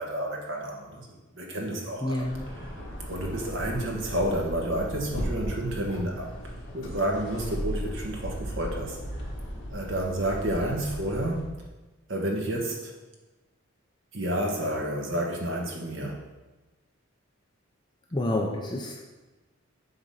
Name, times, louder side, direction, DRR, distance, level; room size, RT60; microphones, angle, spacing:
voice 1, 0.0-2.3 3.1-6.3 6.7-9.2 9.7-11.5 12.1-12.9 14.1-16.2, right 1 dB, 60° right, 0 dB, 1.5 m, -30 dB
voice 2, 2.0-2.5 18.1-19.0, left 1 dB, 20° left, -1 dB, 0.6 m, -29 dB
sound 1, 2.1-11.6, equal, 65° left, 1.6 m, -36 dB
7.9 x 4.0 x 5.5 m, 1.1 s
head